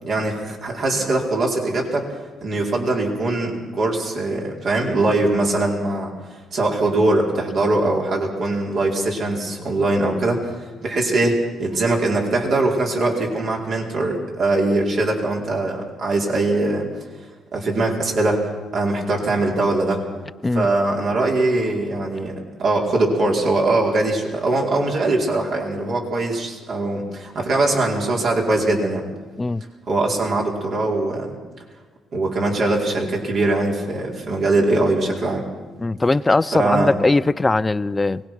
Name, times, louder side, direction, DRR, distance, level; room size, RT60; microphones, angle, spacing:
voice 1, 0.0-2.0 2.4-16.9 17.5-20.0 20.5-29.0 29.9-31.4 32.1-35.5 36.5-36.9, right 2 dB, 60° right, 0 dB, 4.7 m, -21 dB
voice 2, 35.8-38.2, left 2 dB, 20° left, 16 dB, 0.5 m, -20 dB
23.5 x 20.0 x 6.1 m, 1.3 s
cardioid pair, 90°, 0 cm